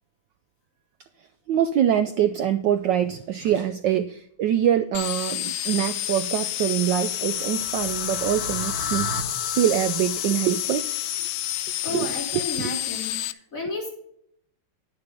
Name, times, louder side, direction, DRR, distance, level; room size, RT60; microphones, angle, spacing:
voice 1, 1.5-9.2 9.5-10.9 11.9-12.7, right 10 dB, 75° right, 1.1 m, -24 dB
sound 1, 4.9-13.3, left 14 dB, 90° left, 1.5 m, -29 dB
sound 2, 6.6-11.7, left 3 dB, 60° left, 2.2 m, -35 dB
voice 2, 11.8-13.9, left 2 dB, 40° left, 3.4 m, -32 dB
10.5 x 6.7 x 5.2 m
omnidirectional pair, 2.3 m